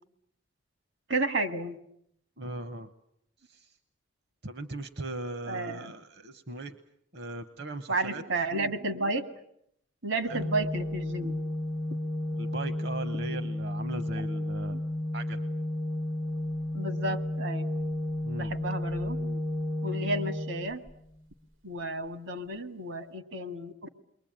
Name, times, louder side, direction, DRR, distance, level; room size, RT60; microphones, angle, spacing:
voice 1, 1.1-1.8 5.5-5.9 7.9-9.2 10.0-11.4 14.7-14.8 16.7-17.7 18.3-19.4 19.8-20.8 21.6-23.9, right 2 dB, 75° right, 9 dB, 2.1 m, -32 dB
voice 2, 2.4-2.9 3.4-3.8 4.4-6.8 7.1-8.4 10.3-10.4 12.3-14.8 15.1-15.4 18.2-18.5, right 2 dB, 55° right, 10 dB, 1.0 m, -39 dB
Organ, 10.3-21.2, left 1 dB, 90° right, 2.4 m, -32 dB
29.0 x 22.5 x 8.9 m, 0.74 s
head